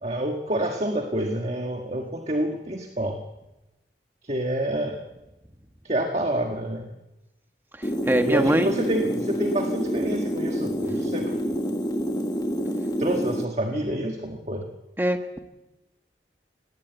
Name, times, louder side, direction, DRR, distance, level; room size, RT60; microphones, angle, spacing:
voice 1, 0.0-3.2 4.2-5.1 5.8-6.9 8.1-11.3 13.0-14.7, right 1 dB, 40° right, 3 dB, 1.5 m, -28 dB
sound 1, 7.8-13.5, equal, 20° left, 1.2 m, -27 dB
voice 2, 7.8-8.7 15.0-15.4, right 1 dB, 10° right, 6 dB, 1.4 m, -23 dB
19.0 x 17.5 x 8.0 m, 1.0 s
head